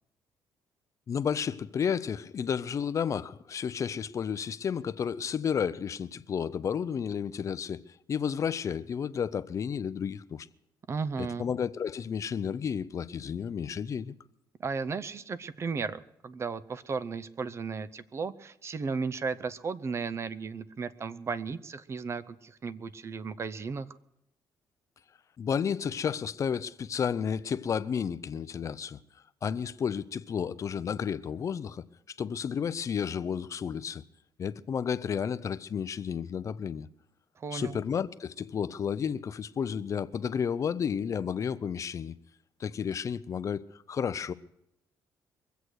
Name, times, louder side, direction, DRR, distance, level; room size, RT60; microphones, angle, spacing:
voice 1, 1.1-7.8 8.1-10.5 11.2-14.1 25.4-29.0 29.4-31.8 32.2-34.0 34.4-36.9 37.5-42.1 42.6-44.3, left 7 dB, 40° left, 0.6 m, -32 dB
voice 2, 10.9-11.5 14.6-23.9 37.4-37.8, right 5 dB, 35° right, 0.7 m, -35 dB
23.0 x 8.2 x 6.3 m
cardioid pair, 120°, 8 cm